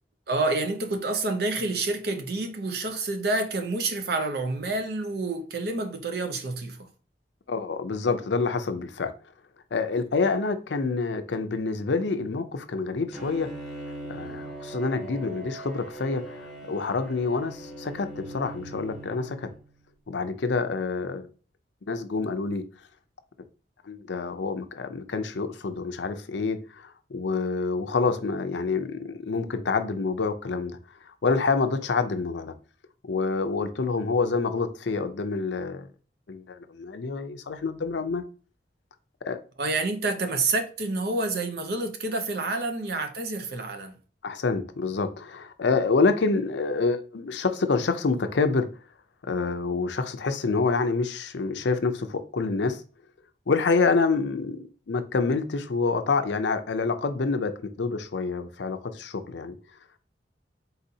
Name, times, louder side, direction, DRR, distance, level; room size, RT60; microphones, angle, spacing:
voice 1, 0.3-6.9 39.6-44.0, right 3 dB, 60° right, 0.7 m, -28 dB
voice 2, 7.5-9.1 9.7-13.5 14.1-19.5 20.1-21.3 21.9-22.6 23.8-30.8 31.0-32.5 33.0-35.9 36.3-38.2 39.2-39.4 44.2-48.7 49.2-52.8 53.5-54.6 54.9-59.5, left 4 dB, 80° left, 0.5 m, -27 dB
Bowed string instrument, 13.1-19.8, right 1 dB, ahead, 1.0 m, -40 dB
4.1 x 3.9 x 2.7 m
head